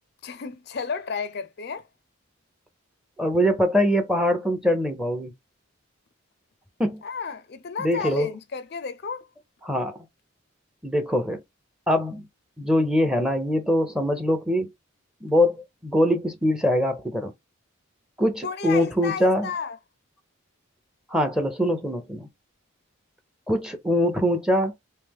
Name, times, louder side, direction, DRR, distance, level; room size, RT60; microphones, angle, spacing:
voice 1, 0.2-1.9 7.0-9.3 18.4-19.8, left 5 dB, 50° left, 0.5 m, -32 dB
voice 2, 3.2-5.3 6.8-7.0 7.8-8.3 9.6-10.0 10.8-11.4 11.9-12.2 12.6-14.7 15.2-17.3 18.2-19.5 21.1-22.3 23.5-24.7, equal, 5° right, 0.7 m, -23 dB
3.2 x 2.9 x 3.5 m
head